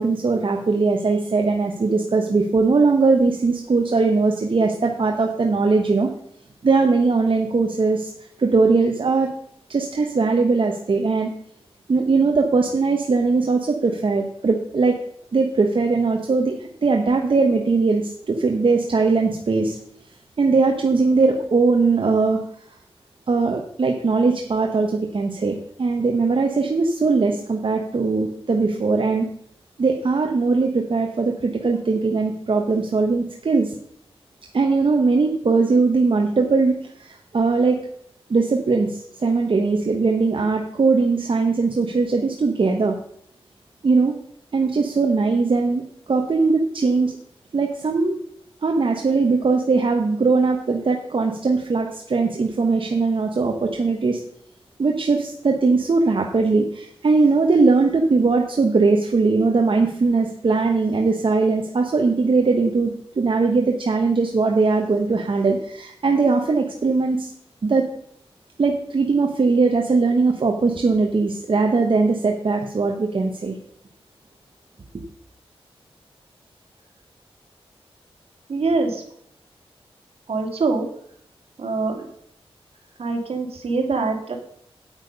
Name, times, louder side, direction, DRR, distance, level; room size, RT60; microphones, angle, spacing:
voice 1, 0.0-6.1 6.6-8.1 8.4-9.3 9.7-11.3 11.9-15.0 15.3-19.8 20.4-22.4 23.3-29.3 29.8-33.7 34.5-37.8 38.3-42.9 43.8-44.1 44.5-45.8 46.1-47.2 47.5-48.2 48.6-54.2 54.8-67.3 67.6-67.8 68.6-73.5 74.9-75.0, right 4 dB, 55° right, 2 dB, 1.1 m, -20 dB
voice 2, 78.5-79.0 80.3-80.9 81.6-82.0 83.0-84.4, right 3 dB, 75° right, 2 dB, 2.4 m, -23 dB
8.8 x 8.7 x 5.4 m, 0.66 s
wide cardioid pair, 75°, 10 cm